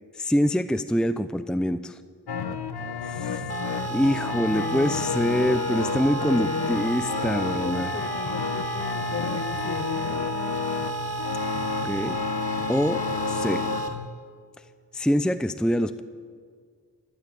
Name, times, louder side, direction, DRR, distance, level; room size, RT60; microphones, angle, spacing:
voice 1, 0.2-2.0 3.0-3.5 3.9-7.9 11.8-12.2 12.7-13.0 13.3-13.6 14.9-16.0, equal, ahead, 11 dB, 0.7 m, -25 dB
sound 1, 2.3-14.1, left 5 dB, 75° left, 1.3 m, -31 dB
voice 2, 3.3-4.4 7.6-10.3, left 6 dB, 45° left, 13 dB, 0.7 m, -38 dB
sound 2, 3.5-13.9, right 2 dB, 40° right, 3.3 m, -32 dB
29.5 x 13.5 x 8.6 m, 2.1 s
wide cardioid pair, 75°, 39 cm